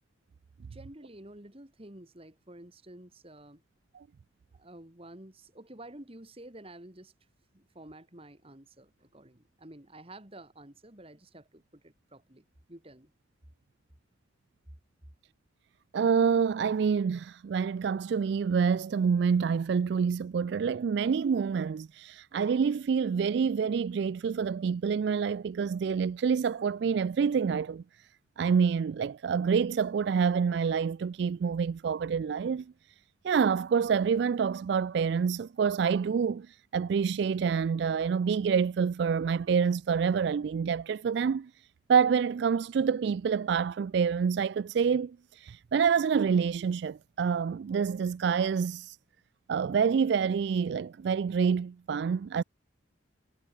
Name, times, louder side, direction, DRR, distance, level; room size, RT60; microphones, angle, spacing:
voice 1, 0.7-3.6 4.5-7.1 7.5-13.1, right 1 dB, 30° right, 2.2 m, -50 dB
voice 2, 15.9-28.1 28.4-32.7 33.2-49.0 49.5-52.4, right 6 dB, 55° right, 0.3 m, -27 dB
head